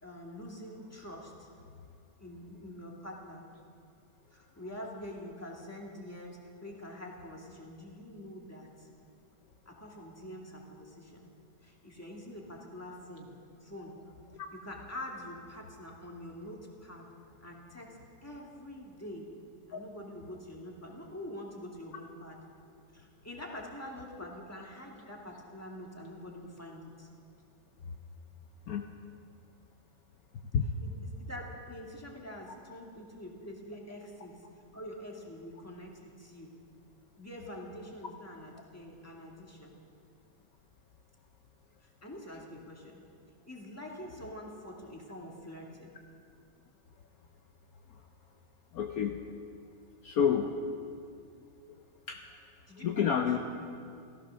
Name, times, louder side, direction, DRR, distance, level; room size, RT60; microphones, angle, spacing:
voice 1, 0.0-1.5 2.2-3.4 4.3-8.9 9.7-11.3 11.6-13.3 13.6-14.0 14.5-17.1 17.4-19.3 19.7-22.4 22.9-27.1 30.8-34.5 34.7-36.5 37.2-39.7 41.8-43.0 43.5-45.9 52.7-53.4, left 1 dB, 10° left, -2 dB, 2.1 m, -45 dB
voice 2, 48.7-49.2 50.0-50.6 52.1-52.2 52.8-53.4, left 7 dB, 65° left, 4 dB, 1.2 m, -29 dB
15.5 x 14.5 x 6.4 m, 2.5 s
omnidirectional pair, 1.8 m